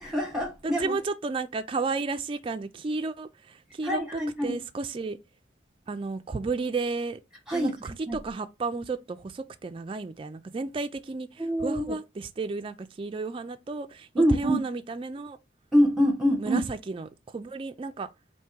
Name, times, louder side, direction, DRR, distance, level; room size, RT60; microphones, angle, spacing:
voice 1, 0.0-1.0 3.8-4.6 7.5-7.7 8.1-8.2 11.4-11.9 14.2-14.6 15.7-16.6, equal, 5° right, 1.3 m, -25 dB
voice 2, 0.6-5.2 5.9-7.2 7.5-15.4 16.4-18.1, right 3 dB, 30° right, 0.3 m, -33 dB
3.5 x 2.7 x 4.4 m
head